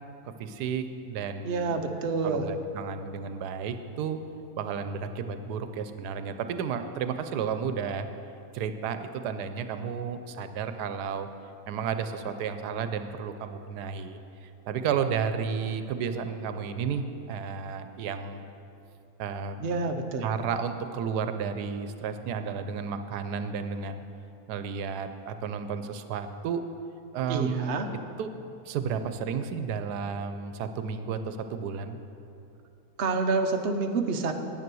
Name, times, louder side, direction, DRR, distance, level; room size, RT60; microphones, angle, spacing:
voice 1, 0.2-2.0 2.2-4.2 4.6-8.1 8.5-11.3 11.7-18.4 19.2-19.7 20.2-24.0 24.5-26.6 27.1-27.7 28.2-28.3 28.6-32.0, right 6 dB, 85° right, 9 dB, 1.2 m, -32 dB
voice 2, 1.4-2.5 19.6-20.2 27.3-27.9 33.0-34.3, right 4 dB, 50° right, 5 dB, 0.8 m, -28 dB
9.5 x 9.1 x 6.1 m, 2.8 s
omnidirectional pair, 1.7 m